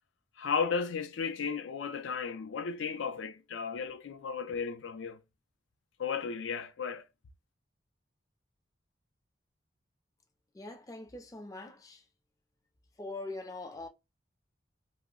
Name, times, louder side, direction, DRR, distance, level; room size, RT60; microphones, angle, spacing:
voice 1, 0.4-5.2 6.0-7.0, left 5 dB, 80° left, 0.4 m, -34 dB
voice 2, 10.5-12.0 13.0-13.9, left 2 dB, 20° left, 0.4 m, -42 dB
2.7 x 2.0 x 3.7 m
head